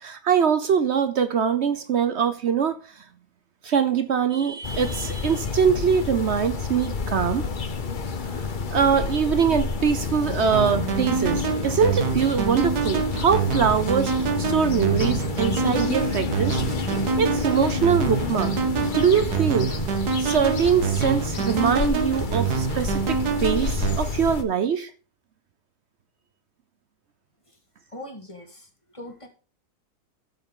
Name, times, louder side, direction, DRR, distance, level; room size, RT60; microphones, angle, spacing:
voice 1, 0.0-2.8 3.6-7.5 8.7-16.6 17.2-18.5 19.0-19.7 20.2-24.9, right 7 dB, 55° right, 0.8 m, -23 dB
sound 1, 4.6-24.4, left 5 dB, 40° left, 0.8 m, -29 dB
sound 2, 10.5-24.0, right 6 dB, 75° right, 1.7 m, -26 dB
voice 2, 27.9-29.3, left 1 dB, 20° left, 1.8 m, -41 dB
13.0 x 7.3 x 3.8 m
omnidirectional pair, 1.7 m